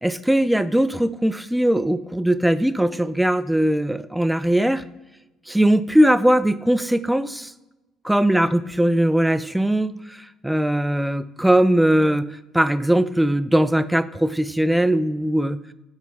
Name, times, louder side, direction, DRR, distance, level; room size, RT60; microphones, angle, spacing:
voice 1, 0.0-4.8 5.5-7.5 8.0-10.2 10.4-12.3 12.5-15.6, right 1 dB, 5° right, 14 dB, 0.4 m, -20 dB
7.2 x 4.3 x 4.1 m, 1.0 s
supercardioid pair, 85°, 0 cm